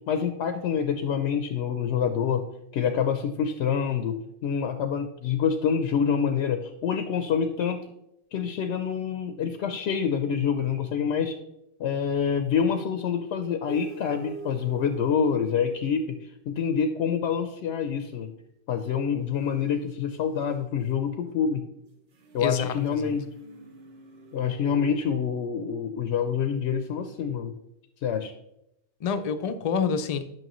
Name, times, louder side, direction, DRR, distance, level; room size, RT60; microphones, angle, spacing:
voice 1, 0.1-2.4 2.7-7.8 8.3-11.4 11.8-16.2 16.5-18.3 18.7-21.6 22.3-23.3 24.3-27.5 28.0-28.3, left 7 dB, 85° left, 7 dB, 0.9 m, -26 dB
sound 1, 13.7-16.3 19.8-25.0, right 5 dB, 65° right, 1.1 m, -45 dB
voice 2, 22.4-23.1 29.0-30.2, left 6 dB, 50° left, 9 dB, 0.5 m, -28 dB
9.2 x 5.8 x 3.0 m, 0.81 s
omnidirectional pair, 1.1 m